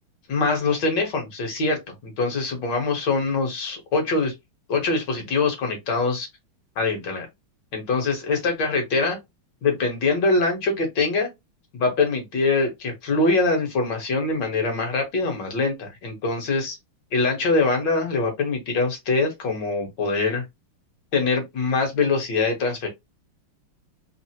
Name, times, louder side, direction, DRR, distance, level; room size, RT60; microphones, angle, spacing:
voice 1, 0.3-4.3 4.7-6.3 6.8-7.3 7.7-9.2 9.6-11.3 11.7-16.8 17.1-20.4 21.1-22.9, left 3 dB, 60° left, 1.7 m, -23 dB
3.8 x 2.0 x 2.7 m
omnidirectional pair, 2.3 m